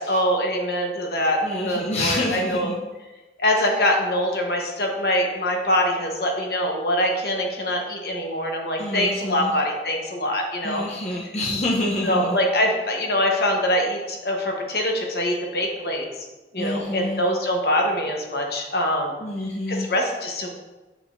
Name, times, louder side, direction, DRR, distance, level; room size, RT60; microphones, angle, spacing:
voice 1, 0.0-2.7 3.4-10.8 12.0-16.1 16.5-19.1 19.7-20.5, left 1 dB, 60° left, 1 dB, 1.1 m, -24 dB
voice 2, 1.4-2.8 8.8-9.5 10.6-12.4 16.6-17.2 19.2-19.9, left 1 dB, 35° left, -4 dB, 0.7 m, -27 dB
7.6 x 6.0 x 2.6 m, 1.1 s
head